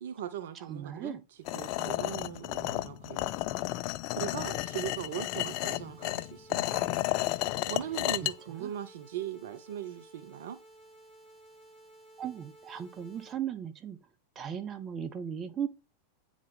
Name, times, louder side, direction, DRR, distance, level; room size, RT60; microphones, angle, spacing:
voice 1, 0.0-1.2 1.5-3.3 4.1-6.9 7.7-10.6, right 10 dB, 60° right, 0.7 m, -39 dB
voice 2, 0.5-1.2 8.5-8.7 12.2-14.0 14.3-15.7, right 8 dB, 25° right, 0.9 m, -37 dB
sound 1, 1.5-8.3, left 17 dB, 45° left, 0.4 m, -32 dB
sound 2, 4.3-13.3, right 1 dB, 5° right, 1.6 m, -55 dB
8.9 x 3.6 x 3.9 m
figure-of-eight pair, 90°, 0 cm